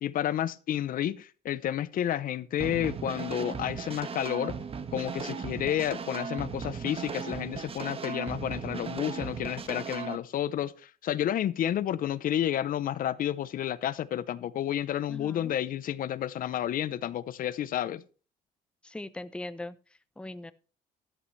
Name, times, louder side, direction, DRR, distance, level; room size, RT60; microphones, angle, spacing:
voice 1, 0.0-4.5 4.9-18.0, left 11 dB, 55° left, 0.7 m, -31 dB
sound 1, 2.6-10.2, right 6 dB, 35° right, 1.3 m, -37 dB
voice 2, 15.1-15.6 18.8-19.8 20.2-20.5, left 1 dB, 5° left, 0.7 m, -40 dB
12.5 x 11.5 x 3.2 m
cardioid pair, 110°, 17 cm